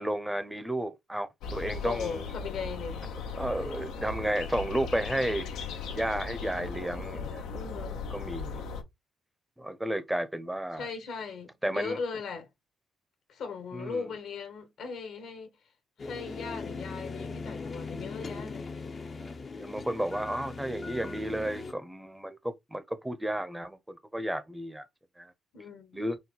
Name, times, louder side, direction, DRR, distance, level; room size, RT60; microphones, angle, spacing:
voice 1, 0.0-2.3 3.4-5.5 5.9-7.5 8.1-8.6 9.6-10.9 11.6-12.0 13.7-14.1 19.2-19.3 19.6-24.9 25.2-25.3 25.9-26.2, right 1 dB, 5° right, 0.6 m, -32 dB
sound 1, 1.4-8.8, left 4 dB, 90° left, 0.7 m, -37 dB
voice 2, 1.8-3.0 7.5-8.0 10.8-12.5 13.3-15.6 16.0-18.8 25.5-26.0, left 5 dB, 70° left, 1.4 m, -38 dB
sound 2, 16.0-21.7, left 4 dB, 40° left, 0.6 m, -39 dB
4.1 x 2.1 x 3.8 m
cardioid pair, 90°, 0 cm